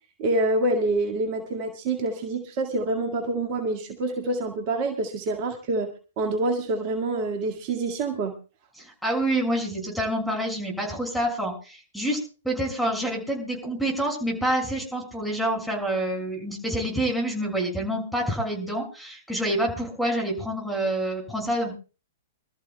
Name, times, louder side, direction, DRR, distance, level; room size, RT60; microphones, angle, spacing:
voice 1, 0.2-5.9 6.2-8.3, right 2 dB, 40° right, 2 dB, 2.0 m, -26 dB
voice 2, 8.8-12.2 12.4-21.7, right 1 dB, ahead, 0 dB, 6.0 m, -27 dB
26.0 x 13.5 x 2.3 m, 0.35 s
hypercardioid pair, 115°, 0 cm